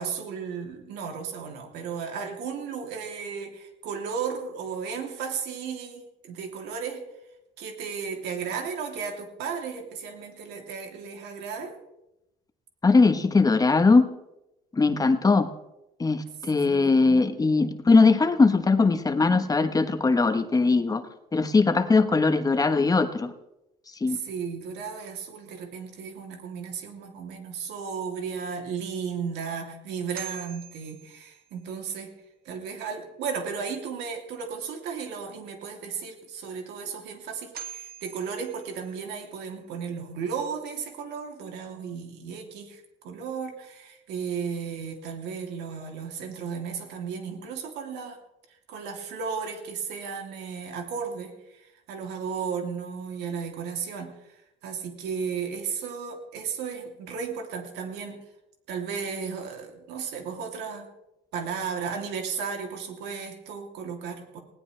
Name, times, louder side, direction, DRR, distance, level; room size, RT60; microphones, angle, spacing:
voice 1, 0.0-7.0 7.6-11.8 16.7-17.3 24.1-32.1 32.4-48.2 48.7-54.1 54.6-58.2 58.7-60.9 61.3-64.4, right 6 dB, 85° right, 2 dB, 3.0 m, -34 dB
voice 2, 12.8-14.1 14.7-15.5 16.0-21.0 21.3-23.3 24.0-24.2, left 3 dB, 20° left, 8 dB, 1.2 m, -20 dB
sound 1, 28.7-28.8 29.3-29.4 30.1-31.8 36.9-37.0 37.5-39.2, right 9 dB, 65° right, 2.3 m, -43 dB
20.0 x 17.0 x 3.4 m, 0.90 s
cardioid pair, 110°, 17 cm